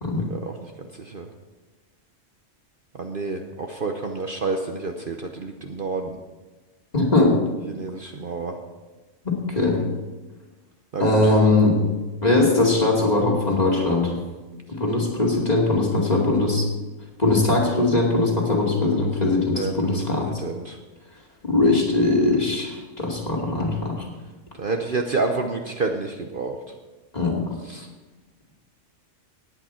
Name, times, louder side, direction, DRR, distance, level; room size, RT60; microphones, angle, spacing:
voice 1, 0.1-0.7 1.0-1.3 2.9-6.2 7.7-8.6 10.9-11.2 19.5-20.8 24.6-26.6 27.7-27.9, right 3 dB, 45° right, 3 dB, 1.0 m, -29 dB
voice 2, 6.9-7.4 9.2-9.8 11.0-11.8 12.2-14.1 14.7-16.7 17.2-20.3 21.4-24.1 27.1-27.4, left 2 dB, 30° left, -2 dB, 2.6 m, -20 dB
18.5 x 8.8 x 4.4 m, 1.2 s
omnidirectional pair, 1.3 m